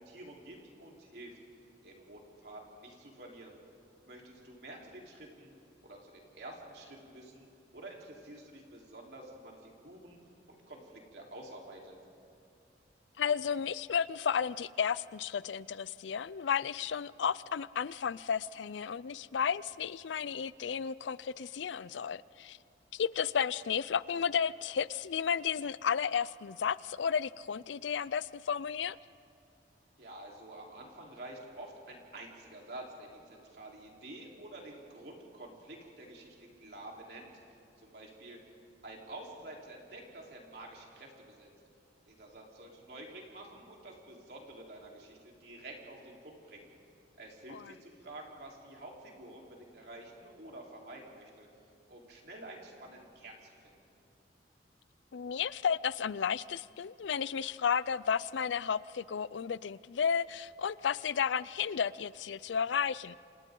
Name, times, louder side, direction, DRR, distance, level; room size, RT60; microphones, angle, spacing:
voice 1, 0.0-1.4 1.8-3.6 4.0-5.5 5.8-7.5 7.7-10.2 10.5-12.0 30.0-37.3 37.8-38.4 38.8-41.5 42.1-46.7 47.2-51.5 51.9-54.0, right 1 dB, 60° right, -1 dB, 3.9 m, -49 dB
voice 2, 13.2-22.6 22.9-29.0 47.5-47.7 55.1-63.2, left 7 dB, 80° left, 19 dB, 0.4 m, -33 dB
30.0 x 26.5 x 3.9 m, 2.6 s
head